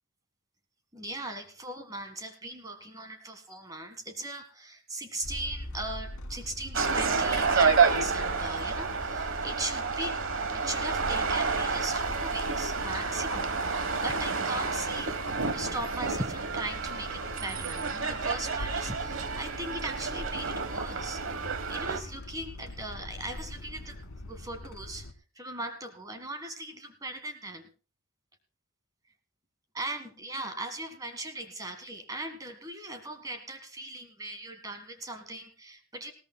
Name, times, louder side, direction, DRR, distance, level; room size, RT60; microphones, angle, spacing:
voice 1, 0.9-10.2 10.5-15.2 15.5-25.1 25.3-27.7 29.7-36.1, right 1 dB, 15° right, 7 dB, 1.5 m, -39 dB
sound 1, 5.2-25.1, left 1 dB, 85° left, 1.8 m, -42 dB
sound 2, 6.7-22.0, right 5 dB, 60° right, 1.2 m, -29 dB
20.0 x 17.0 x 2.2 m, 0.35 s
head